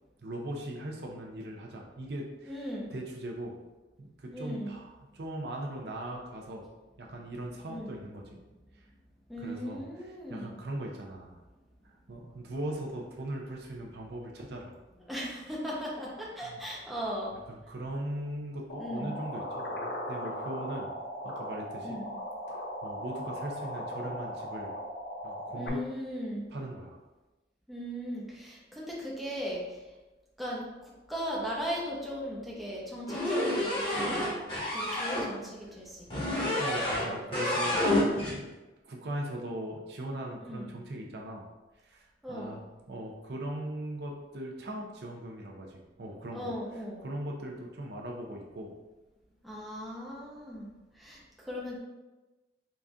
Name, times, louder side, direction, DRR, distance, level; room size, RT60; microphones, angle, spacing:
voice 1, 0.2-3.6 4.0-6.7 7.0-8.4 9.4-11.4 11.8-14.8 16.4-16.6 17.5-20.9 21.2-22.0 22.5-24.7 25.2-25.8 26.5-27.0 36.6-38.4 38.8-41.4 41.8-42.6 42.9-46.5 47.0-48.7, right 1 dB, 70° right, 0 dB, 0.6 m, -39 dB
voice 2, 2.5-2.9 4.3-4.8 7.6-8.0 9.3-10.6 15.1-17.3 18.8-19.2 21.8-22.1 25.5-26.5 27.7-29.8 30.4-34.2 34.7-36.0 36.4-36.6 37.1-37.3 37.6-37.8 38.1-38.3 40.4-40.7 42.2-42.6 46.3-47.0 49.4-51.8, equal, ahead, -5 dB, 0.7 m, -38 dB
sound 1, 18.7-25.7, equal, 75° left, 0.6 m, -38 dB
sound 2, 33.1-35.3 36.1-37.1 37.3-38.3, left 1 dB, 30° left, 1.1 m, -29 dB
4.0 x 2.4 x 3.5 m, 1.1 s
head